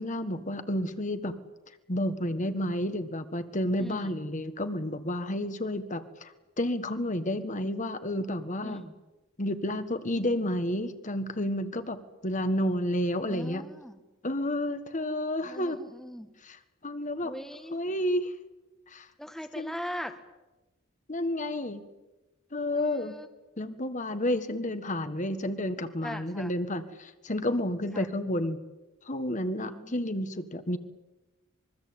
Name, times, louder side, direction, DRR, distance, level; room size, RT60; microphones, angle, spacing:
voice 1, 0.0-1.4 1.9-8.8 9.4-13.6 14.2-15.8 16.4-17.3 17.7-18.3 18.9-19.1 19.5-19.7 21.1-21.8 22.5-23.2 23.6-28.6 29.1-30.8, left 1 dB, 35° left, 9 dB, 1.6 m, -31 dB
voice 2, 3.8-4.2 8.6-8.9 13.3-14.0 15.4-16.3 17.2-17.8 19.2-20.2 22.7-23.3 26.0-26.5 27.9-28.1 29.6-29.9, equal, ahead, 7 dB, 1.5 m, -40 dB
25.5 x 22.5 x 8.8 m, 1.1 s
head